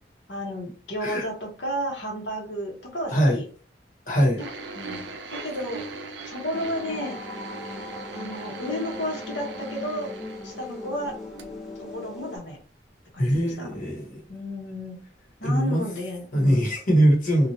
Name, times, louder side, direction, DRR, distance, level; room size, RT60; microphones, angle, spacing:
voice 1, 0.3-3.4 4.7-5.8 6.2-7.2 8.1-10.1 10.4-11.2 11.8-12.6 13.1-13.5 14.3-15.0 15.4-16.6, equal, 85° left, 1.1 m, -32 dB
voice 2, 3.1-3.4 4.1-4.4 13.2-14.2 15.4-15.8 16.3-17.5, equal, 50° left, 1.1 m, -22 dB
sound 1, 4.4-11.1 11.4-11.5 12.3-12.4, right 3 dB, 85° right, 0.5 m, -40 dB
sound 2, 6.5-12.4, left 2 dB, ahead, 0.8 m, -38 dB
2.9 x 2.4 x 2.8 m
head